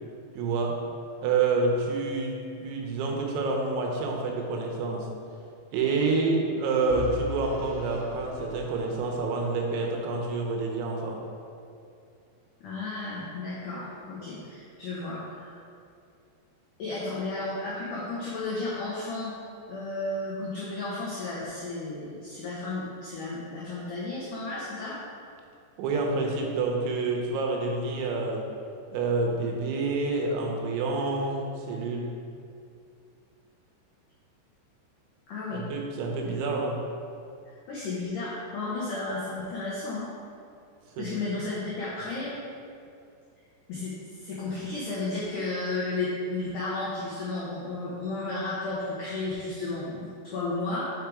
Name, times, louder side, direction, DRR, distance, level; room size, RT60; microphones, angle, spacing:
voice 1, 0.4-0.8 1.2-5.1 5.7-11.2 25.8-28.4 28.9-32.1 35.5-36.8 41.0-41.1, right 3 dB, 85° right, 0 dB, 3.2 m, -28 dB
Vehicle / Engine, 6.9-9.9, left 4 dB, 55° left, 1.4 m, -40 dB
voice 2, 12.6-15.5 16.8-19.4 19.7-25.0 35.3-35.6 36.4-36.5 37.5-40.1 41.0-42.3 43.7-50.9, left 2 dB, 90° left, -7 dB, 1.8 m, -33 dB
6.5 x 5.1 x 4.7 m, 2.4 s
omnidirectional pair, 5.2 m